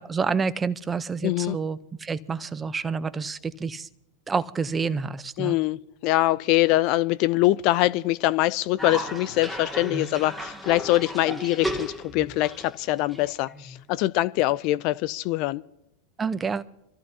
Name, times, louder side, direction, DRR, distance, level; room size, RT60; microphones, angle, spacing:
voice 1, 0.0-3.9 4.3-5.6 16.2-16.6, right 5 dB, 20° right, 0.8 m, -28 dB
voice 2, 1.2-1.6 5.4-15.6, left 17 dB, 55° left, 0.4 m, -23 dB
Cough, 8.8-13.8, equal, 5° left, 2.2 m, -35 dB
26.0 x 14.0 x 2.8 m
hypercardioid pair, 95°, 0 cm